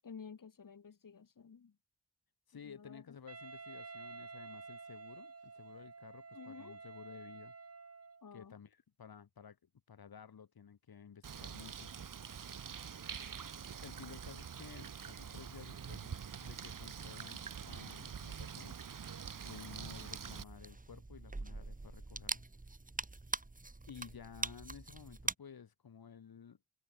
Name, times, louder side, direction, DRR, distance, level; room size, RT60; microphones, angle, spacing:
voice 1, 0.0-1.8 2.6-3.2 6.3-6.8 8.2-8.5, left 6 dB, 65° left, 5.9 m, -52 dB
voice 2, 2.5-7.5 8.3-9.6 9.9-11.9 13.8-18.8 19.4-22.4 23.9-26.6, left 7 dB, 85° left, 5.3 m, -54 dB
Wind instrument woodwind instrument, 3.3-8.3, right 4 dB, 40° right, 5.9 m, -51 dB
Bird, 11.2-20.4, right 7 dB, 65° right, 1.7 m, -46 dB
sound 1, 19.7-25.3, right 2 dB, 20° right, 4.0 m, -43 dB
wide cardioid pair, 125°, 36 cm